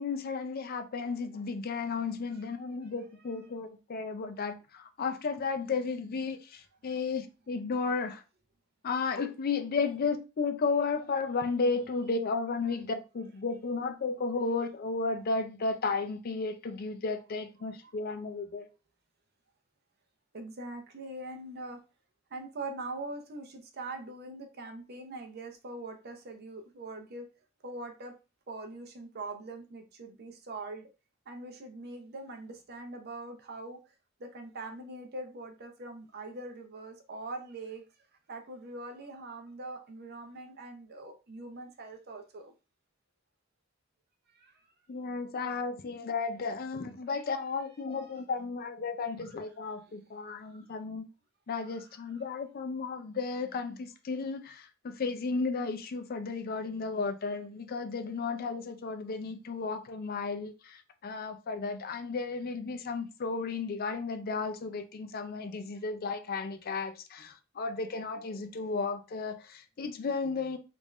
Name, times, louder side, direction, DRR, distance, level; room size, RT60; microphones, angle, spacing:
voice 1, 0.0-8.2 8.8-18.7 44.9-51.1 51.5-70.6, left 4 dB, 45° left, 0.4 m, -33 dB
voice 2, 20.3-21.8 22.3-27.3 27.6-28.1 28.5-30.9 31.3-33.8 34.2-37.8 38.3-42.5 44.3-44.5 50.4-50.6 51.6-51.9, right 2 dB, 50° right, 0.7 m, -42 dB
3.4 x 2.5 x 3.1 m
head